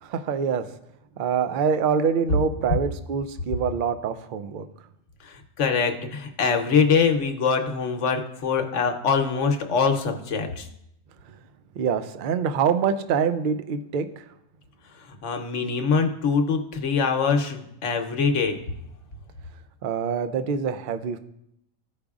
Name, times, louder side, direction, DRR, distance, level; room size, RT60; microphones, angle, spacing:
voice 1, 0.0-0.7 1.2-4.7 11.8-14.2 19.8-21.2, right 6 dB, 65° right, 10 dB, 0.5 m, -25 dB
voice 2, 5.2-10.7 15.0-18.6, left 5 dB, 65° left, 5 dB, 1.1 m, -23 dB
15.0 x 5.0 x 2.4 m, 0.78 s
omnidirectional pair, 1.4 m